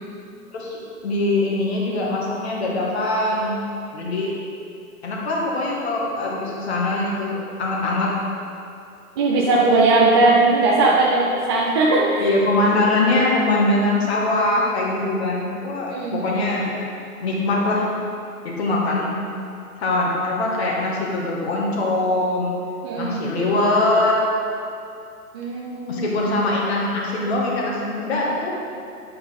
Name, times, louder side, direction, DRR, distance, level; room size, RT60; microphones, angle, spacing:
voice 1, 1.0-3.6 3.9-4.3 5.0-8.1 12.2-16.7 17.2-17.9 18.4-19.1 19.8-22.5 23.0-24.2 25.9-28.6, left 2 dB, 45° left, -3 dB, 2.1 m, -22 dB
voice 2, 9.2-12.3 15.9-16.2 22.8-23.3 25.3-26.1, right 2 dB, 20° right, -4 dB, 0.5 m, -19 dB
8.8 x 8.2 x 5.2 m, 2.5 s
figure-of-eight pair, 125°, 45 cm